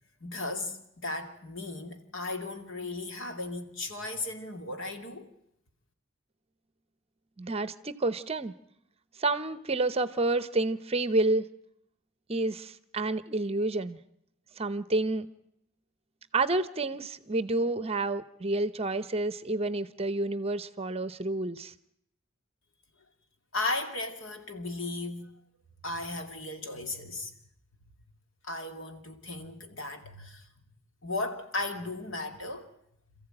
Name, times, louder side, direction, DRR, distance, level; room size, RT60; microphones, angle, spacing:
voice 1, 0.2-5.3 23.5-25.3 25.8-27.3 28.4-30.5 31.0-32.7, left 2 dB, 65° left, 2.6 m, -36 dB
voice 2, 7.4-8.5 9.2-11.5 12.3-14.0 14.6-15.3 16.3-21.7, right 2 dB, 30° right, 0.8 m, -29 dB
27.5 x 14.5 x 9.0 m
head